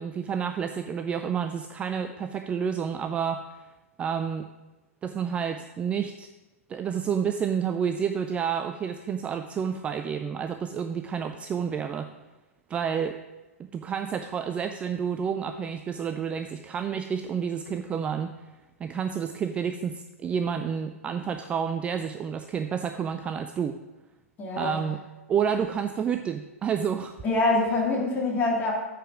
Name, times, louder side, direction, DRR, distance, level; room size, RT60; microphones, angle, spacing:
voice 1, 0.0-3.4 4.0-4.5 5.0-6.3 6.7-12.1 12.7-13.2 13.6-18.5 18.8-23.8 24.6-25.0 25.3-27.1, right 7 dB, 15° right, 7 dB, 0.3 m, -29 dB
voice 2, 24.4-24.8 27.2-28.7, left 2 dB, 20° left, -2 dB, 2.3 m, -25 dB
9.1 x 4.9 x 5.9 m, 1.1 s
figure-of-eight pair, 110°, 8 cm